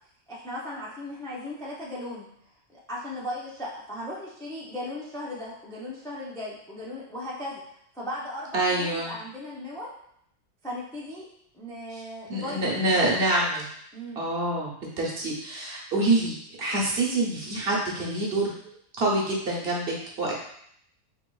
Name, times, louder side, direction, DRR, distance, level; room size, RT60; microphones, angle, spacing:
voice 1, 0.3-2.3 2.7-7.6 7.9-9.9 10.6-11.3 11.5-13.2 13.9-14.2, left 1 dB, 5° left, -6 dB, 0.3 m, -37 dB
voice 2, 8.5-9.1 12.3-13.5 14.2-14.7 15.0-20.3, right 2 dB, 55° right, -3 dB, 0.9 m, -26 dB
4.2 x 2.9 x 2.3 m, 0.69 s
omnidirectional pair, 1.4 m